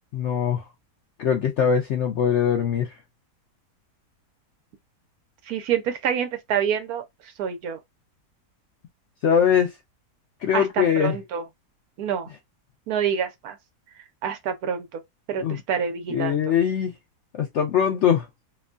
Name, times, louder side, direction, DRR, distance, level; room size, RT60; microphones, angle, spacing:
voice 1, 0.1-0.6 1.2-2.9 9.2-9.7 10.4-11.2 15.4-15.6 16.1-16.9 17.3-18.3, left 8 dB, 70° left, 0.7 m, -22 dB
voice 2, 5.5-7.0 7.4-7.8 10.5-10.7 11.0-11.4 12.0-12.3 12.9-13.5 14.2-15.0 15.3-16.4, right 8 dB, 70° right, 1.1 m, -27 dB
2.9 x 2.2 x 2.4 m
omnidirectional pair, 1.7 m